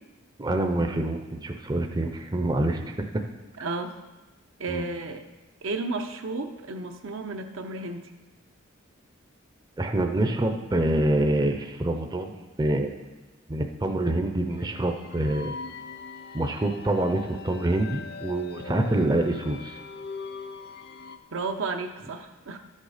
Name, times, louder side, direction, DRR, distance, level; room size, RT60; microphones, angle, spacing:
voice 1, 0.4-2.9 4.7-4.9 9.8-12.9 13.5-15.5 16.3-19.8, right 1 dB, 20° right, 5 dB, 0.6 m, -26 dB
voice 2, 3.6-3.9 4.6-5.3 5.6-8.1 21.3-22.6, right 3 dB, 75° right, 6 dB, 0.8 m, -32 dB
sound 1, 14.5-21.2, left 5 dB, 50° left, 0.6 m, -41 dB
11.5 x 6.6 x 5.0 m, 1.1 s
head